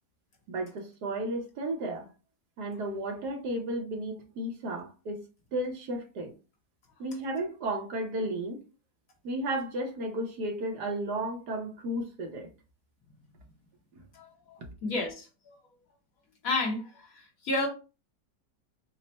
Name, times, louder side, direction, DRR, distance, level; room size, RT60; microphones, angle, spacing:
voice 1, 0.5-2.1 2.6-5.2 5.5-6.3 7.0-8.6 9.2-12.5 13.9-14.0 14.6-14.7, right 1 dB, 70° right, 1.3 m, -33 dB
voice 2, 14.8-15.3 16.4-17.7, left 2 dB, 60° left, 1.3 m, -30 dB
4.1 x 2.1 x 4.0 m
omnidirectional pair, 1.8 m